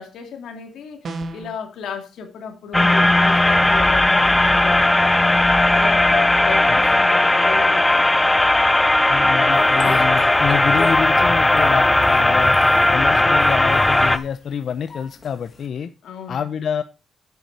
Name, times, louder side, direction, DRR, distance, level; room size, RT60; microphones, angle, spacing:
voice 1, 0.0-5.4 5.7-8.1 16.0-16.7, left 6 dB, 85° left, 2.5 m, -34 dB
sound 1, 1.0-1.6, right 2 dB, 45° right, 1.7 m, -31 dB
sound 2, 2.7-14.2, left 2 dB, 10° left, 0.6 m, -16 dB
voice 2, 6.7-7.0 9.1-12.6 12.9-15.9 16.3-16.8, left 7 dB, 55° left, 0.6 m, -27 dB
Speech, 9.5-11.3 11.6-13.0 13.3-14.3 14.9-15.6, left 4 dB, 30° left, 2.0 m, -32 dB
9.4 x 8.3 x 4.7 m
wide cardioid pair, 155°, 0 cm